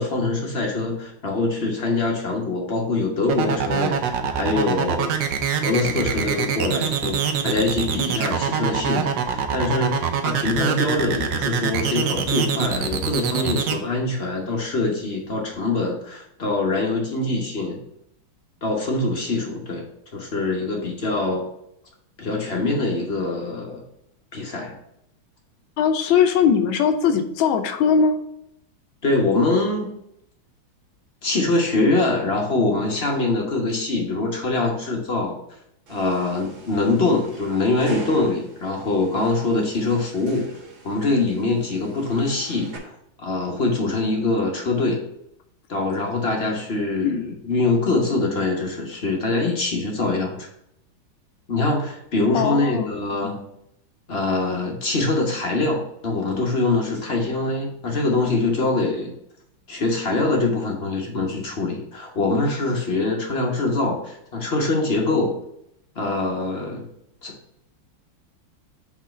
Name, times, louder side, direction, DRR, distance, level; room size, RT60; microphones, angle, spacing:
voice 1, 0.0-5.2 5.6-17.8 18.6-19.9 20.1-21.5 22.2-23.8 24.3-24.8 29.0-29.9 31.2-35.4 35.9-40.5 40.8-42.8 43.2-45.0 45.7-50.5 51.5-53.3 54.1-59.1 59.7-65.4 66.0-66.9 67.2-67.3, left 2 dB, 40° left, 0 dB, 0.9 m, -24 dB
sound 1, 3.3-13.7, right 7 dB, 70° right, 1.3 m, -24 dB
voice 2, 25.8-28.1 47.0-47.2 52.3-52.9 53.2-53.4, left 7 dB, 90° left, 7 dB, 1.5 m, -20 dB
sound 2, 35.9-42.8, right 3 dB, 90° right, 2.3 m, -42 dB
4.6 x 4.0 x 5.6 m, 0.77 s
omnidirectional pair, 2.1 m